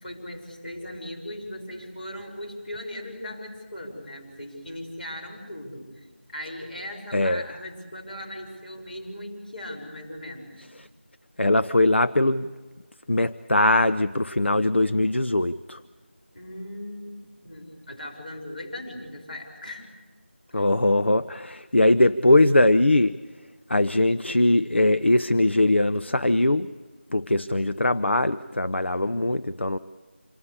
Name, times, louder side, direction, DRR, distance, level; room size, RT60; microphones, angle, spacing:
voice 1, 0.0-10.7 16.3-19.9 20.5-20.6, left 1 dB, 45° left, 2 dB, 5.9 m, -38 dB
voice 2, 7.1-7.4 11.4-12.5 13.1-15.8 20.5-23.2 23.7-26.7 27.1-29.8, left 1 dB, 70° left, 12 dB, 0.7 m, -21 dB
27.0 x 18.5 x 8.3 m, 1.3 s
figure-of-eight pair, 175°, 7 cm